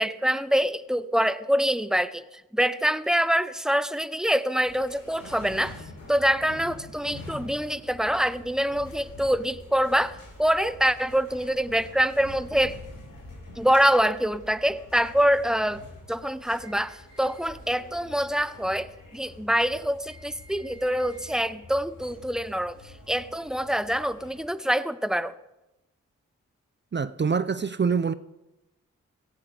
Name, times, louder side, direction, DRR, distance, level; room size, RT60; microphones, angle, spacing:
voice 1, 0.0-2.2 2.5-5.8 6.1-12.8 13.6-15.8 16.1-22.8 23.1-25.3, equal, ahead, 0.8 m, -25 dB
sound 1, 4.6-24.4, left 1 dB, 85° left, 4.6 m, -46 dB
voice 2, 26.9-28.1, right 5 dB, 35° right, 0.6 m, -25 dB
17.5 x 14.5 x 3.4 m
cardioid pair, 45°, 33 cm